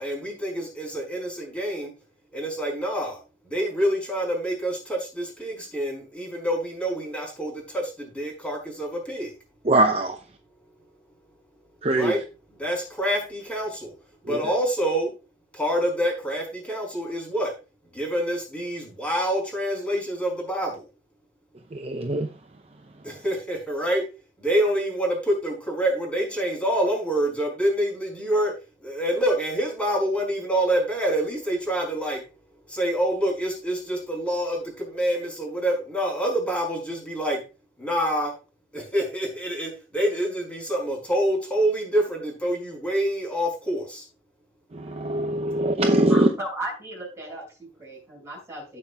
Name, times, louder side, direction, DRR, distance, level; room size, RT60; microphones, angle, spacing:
voice 1, 0.0-1.9 2.3-3.2 3.5-9.3 11.9-12.2 12.6-13.9 14.2-15.1 15.5-17.5 17.9-20.9 23.0-24.0 24.4-28.5 28.8-32.2 32.7-37.4 37.8-38.3 38.7-44.0, right 1 dB, 5° left, 0 dB, 5.1 m, -26 dB
voice 2, 9.6-10.2 11.8-12.1 14.3-14.4 21.7-22.3 44.7-46.3, right 1 dB, 35° right, 5 dB, 0.7 m, -22 dB
voice 3, 46.1-48.8, right 1 dB, 15° right, -1 dB, 5.7 m, -35 dB
16.5 x 5.6 x 2.3 m, 0.31 s
head